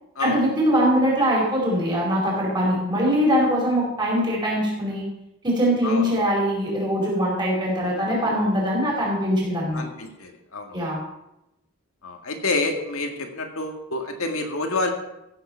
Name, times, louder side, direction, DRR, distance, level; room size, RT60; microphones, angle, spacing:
voice 1, 0.2-5.1 5.4-9.8 10.7-11.0, equal, 20° right, -3 dB, 4.7 m, -22 dB
voice 2, 5.8-6.2 9.7-10.8 12.0-14.9, left 3 dB, 80° left, 3 dB, 2.0 m, -28 dB
15.0 x 7.8 x 5.7 m, 0.87 s
head